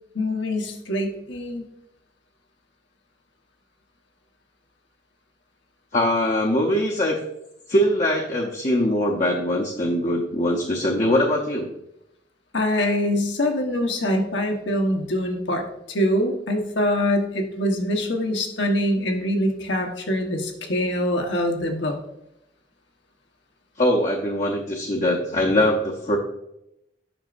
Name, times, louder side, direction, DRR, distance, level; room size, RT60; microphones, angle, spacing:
voice 1, 0.1-1.6 12.5-21.9, left 1 dB, 80° left, 3 dB, 1.1 m, -24 dB
voice 2, 5.9-7.2 7.7-11.7 23.8-26.2, left 1 dB, 40° left, -1 dB, 0.7 m, -22 dB
9.1 x 6.1 x 2.5 m, 0.83 s
head